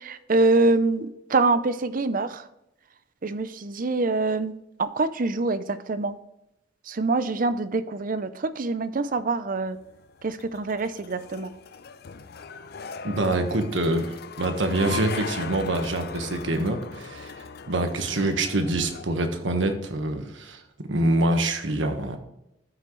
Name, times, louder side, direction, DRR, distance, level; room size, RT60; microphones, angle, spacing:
voice 1, 0.0-2.4 3.2-4.5 4.8-6.1 6.9-9.8 10.2-11.5, right 3 dB, 45° right, 12 dB, 0.6 m, -25 dB
sound 1, 9.8-19.1, left 5 dB, 55° left, 0.5 m, -39 dB
voice 2, 13.0-17.3 17.7-22.2, right 2 dB, 85° right, 6 dB, 1.3 m, -25 dB
13.0 x 6.0 x 3.2 m, 0.86 s
head